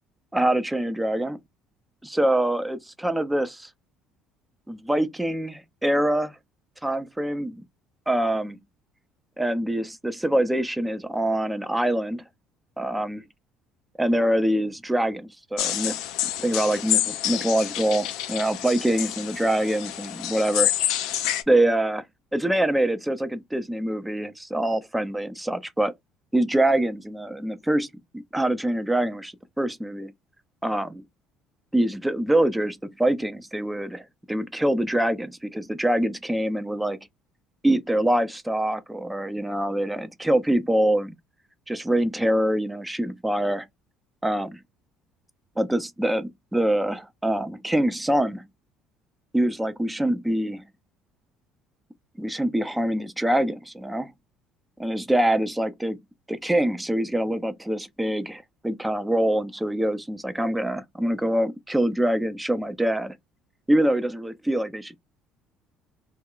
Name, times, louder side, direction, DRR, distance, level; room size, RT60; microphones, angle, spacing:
voice 1, 0.3-1.4 2.1-3.7 4.7-6.4 6.8-7.6 8.1-8.6 9.4-12.2 12.8-13.2 14.0-16.0 16.4-20.7 21.5-22.0 22.3-25.9 26.3-27.9 28.3-30.1 30.6-31.0 31.7-37.0 37.6-41.1 41.7-43.7 44.2-44.5 45.6-48.5 49.3-50.6 52.2-54.1 54.8-56.0 56.3-63.2 63.7-65.0, right 1 dB, 10° right, 0.5 m, -24 dB
sound 1, 15.6-21.4, left 12 dB, 70° left, 0.3 m, -28 dB
2.2 x 2.1 x 3.8 m
hypercardioid pair, 60°, 0 cm